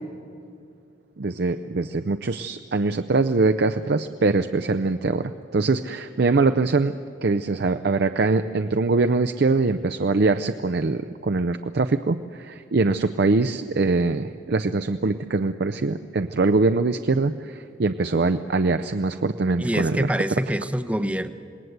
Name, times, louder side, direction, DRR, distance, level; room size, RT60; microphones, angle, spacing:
voice 1, 1.2-6.9 7.2-20.1, right 3 dB, 55° right, 9 dB, 0.5 m, -23 dB
voice 2, 19.6-21.3, equal, 5° right, 11 dB, 0.6 m, -25 dB
27.0 x 19.0 x 8.0 m, 2.5 s
head